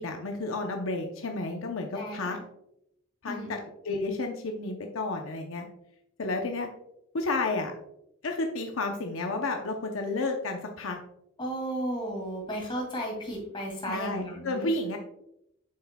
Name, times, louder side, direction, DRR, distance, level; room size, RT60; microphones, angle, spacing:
voice 1, 0.0-2.4 3.2-3.6 3.8-5.7 6.2-6.7 7.1-7.7 8.2-11.0 13.9-15.0, left 2 dB, 75° left, 3 dB, 0.7 m, -31 dB
voice 2, 1.9-2.4 3.3-3.5 11.4-14.7, right 1 dB, 25° left, -1 dB, 2.2 m, -34 dB
7.4 x 5.7 x 2.2 m, 0.80 s
head